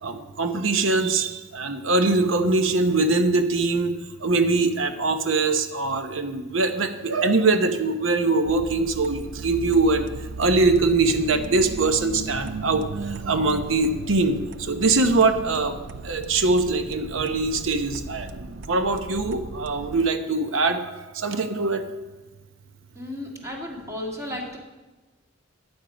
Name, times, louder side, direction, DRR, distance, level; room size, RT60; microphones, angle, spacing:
voice 1, 0.0-3.9 4.2-10.1 10.4-15.8 16.0-21.9, right 3 dB, 85° right, 8 dB, 0.8 m, -22 dB
sound 1, 8.5-20.0, right 4 dB, 65° right, 0.5 m, -36 dB
voice 2, 23.0-24.6, left 1 dB, 15° right, -1 dB, 2.0 m, -34 dB
12.5 x 9.0 x 5.1 m, 1.2 s
head